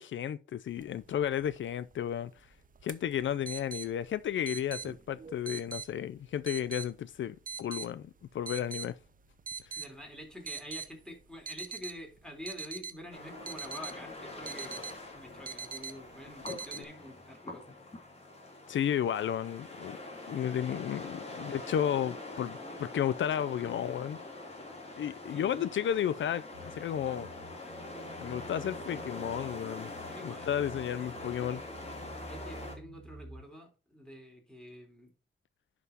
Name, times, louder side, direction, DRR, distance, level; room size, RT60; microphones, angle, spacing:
voice 1, 0.0-2.3 2.8-8.9 9.7-9.8 16.5-16.8 18.7-20.0 20.3-24.2 25.0-27.3 28.2-29.9 30.2-31.6, left 10 dB, 80° left, 0.5 m, -33 dB
sound 1, 0.7-16.8, right 5 dB, 45° right, 0.7 m, -45 dB
voice 2, 9.8-14.8 15.1-17.9 21.6-21.8 25.3-25.8 30.1-30.5 31.9-35.1, equal, 5° left, 3.7 m, -47 dB
sound 2, 13.1-32.8, left 2 dB, 35° left, 3.1 m, -44 dB
sound 3, 26.5-33.4, right 1 dB, 90° right, 1.2 m, -50 dB
11.0 x 6.0 x 2.9 m
cardioid pair, 85°, 20 cm